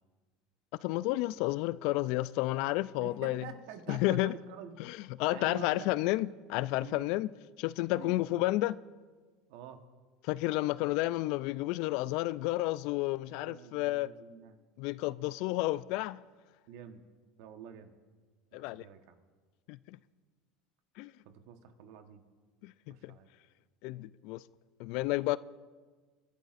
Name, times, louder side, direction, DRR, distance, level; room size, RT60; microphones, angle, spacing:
voice 1, 0.8-3.4 3.9-4.3 4.8-7.3 7.6-8.8 10.3-14.1 14.8-16.2 18.5-18.8 19.7-19.8 21.0-21.1 22.6-23.1 23.8-24.4 24.8-25.4, left 18 dB, 65° left, 0.3 m, -31 dB
voice 2, 3.0-4.8 5.3-5.9 6.8-7.1 7.9-8.2 9.5-9.8 13.3-14.6 16.7-17.0 17.4-18.0 18.5-19.1 21.2-22.2 22.9-23.3, right 8 dB, 70° right, 1.2 m, -48 dB
28.0 x 11.5 x 2.5 m
hypercardioid pair, 95°, 0 cm